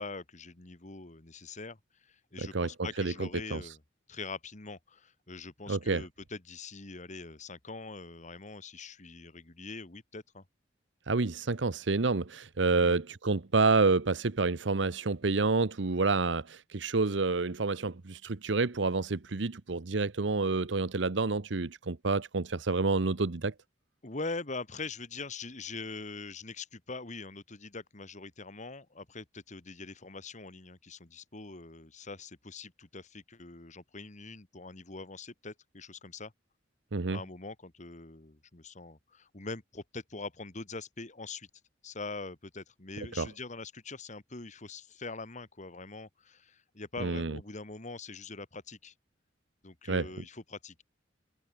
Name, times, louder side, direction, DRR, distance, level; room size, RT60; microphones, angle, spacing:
voice 1, 0.0-3.8 4.1-10.4 12.7-13.0 24.0-36.3 37.1-41.5 41.8-48.9 49.6-50.8, left 3 dB, 40° left, 1.9 m, -43 dB
voice 2, 2.4-2.7 3.0-3.6 5.7-6.0 11.1-23.5 36.9-37.2 43.2-43.3 47.0-47.4 49.9-50.1, right 3 dB, 70° right, 0.9 m, -28 dB
head